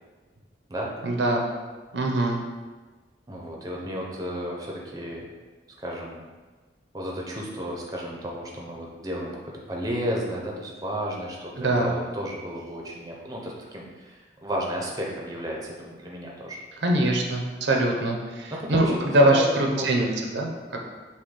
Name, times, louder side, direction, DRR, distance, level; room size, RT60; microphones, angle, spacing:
voice 1, 1.0-1.4 1.9-2.4 11.6-11.9 16.8-20.5, right 1 dB, 75° right, 1 dB, 0.7 m, -23 dB
voice 2, 3.3-5.3 5.8-6.2 6.9-16.6 18.5-19.9, equal, 20° right, -2 dB, 0.6 m, -33 dB
6.3 x 2.2 x 3.7 m, 1.3 s
head